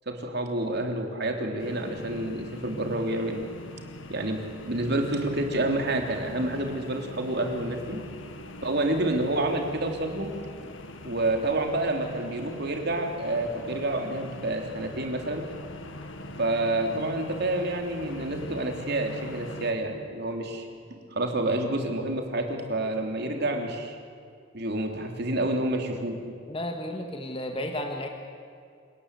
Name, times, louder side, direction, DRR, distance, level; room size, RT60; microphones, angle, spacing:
voice 1, 0.1-3.4 4.1-8.0 8.6-10.3 11.0-15.4 16.4-24.0 24.5-26.2, right 1 dB, 55° right, 3 dB, 3.2 m, -28 dB
sound 1, 1.6-19.7, left 1 dB, 70° left, 2.0 m, -42 dB
voice 2, 26.5-28.1, left 1 dB, 30° left, 3 dB, 1.9 m, -33 dB
28.5 x 18.5 x 8.3 m, 2.4 s
head